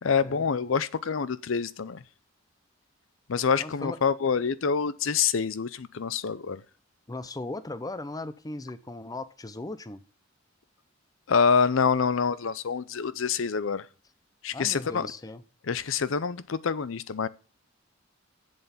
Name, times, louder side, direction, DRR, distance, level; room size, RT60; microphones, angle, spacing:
voice 1, 0.0-2.0 3.3-6.6 11.3-13.9 14.4-15.1 15.7-17.3, left 6 dB, 70° left, 0.6 m, -26 dB
voice 2, 3.6-4.0 7.1-10.0 14.5-15.4, left 2 dB, 20° left, 0.6 m, -37 dB
8.0 x 7.6 x 7.1 m
head